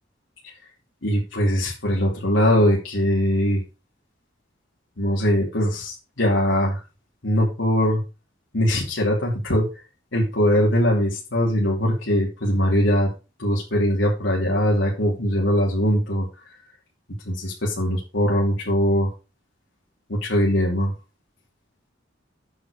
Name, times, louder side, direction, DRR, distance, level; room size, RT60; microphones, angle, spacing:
voice 1, 1.0-3.6 5.0-6.8 7.2-8.0 8.5-9.7 10.1-13.1 13.4-16.2 17.2-19.1 20.1-20.9, equal, 85° left, -4 dB, 2.8 m, -21 dB
8.5 x 6.7 x 5.1 m, 0.30 s
head